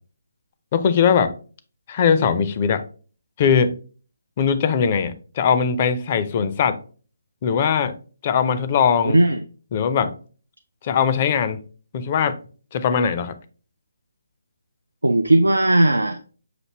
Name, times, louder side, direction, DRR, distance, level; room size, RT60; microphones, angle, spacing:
voice 1, 0.7-1.3 1.9-2.8 3.4-3.7 4.4-6.8 7.4-7.9 8.2-9.2 9.7-10.1 10.8-11.6 11.9-12.4 12.7-13.3, left 7 dB, 35° left, 11 dB, 0.4 m, -20 dB
voice 2, 9.0-9.4 15.0-16.2, right 1 dB, 90° right, 6 dB, 0.3 m, -17 dB
5.8 x 2.7 x 2.9 m, 0.39 s
figure-of-eight pair, 145°, 0 cm